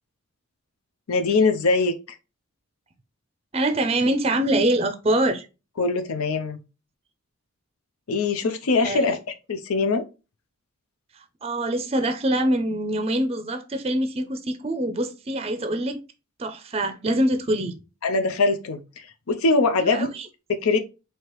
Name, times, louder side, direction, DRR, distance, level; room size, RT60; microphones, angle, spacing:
voice 1, 1.1-2.2 5.8-6.6 8.1-9.2 9.5-10.0 18.0-20.1 20.6-20.8, left 3 dB, 90° left, 0.6 m, -22 dB
voice 2, 3.5-5.5 8.8-9.1 11.1-16.0 16.4-17.8 19.8-20.3, right 1 dB, 30° right, 0.4 m, -24 dB
4.7 x 2.8 x 3.0 m
head